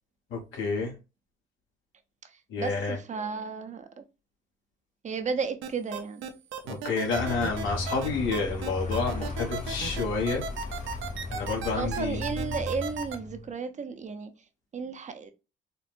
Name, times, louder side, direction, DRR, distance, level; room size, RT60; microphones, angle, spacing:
voice 1, 0.3-0.9 2.5-3.0 6.6-10.4 11.3-12.2, left 4 dB, 80° left, 1.4 m, -29 dB
voice 2, 2.2-4.0 5.0-6.2 11.8-14.3 14.7-15.3, right 5 dB, 35° right, 0.5 m, -33 dB
sound 1, 5.6-13.2, right 6 dB, 85° right, 0.6 m, -35 dB
Vehicle, 7.1-13.5, left 2 dB, 35° left, 1.2 m, -36 dB
4.3 x 2.0 x 2.5 m
cardioid pair, 90°, 20 cm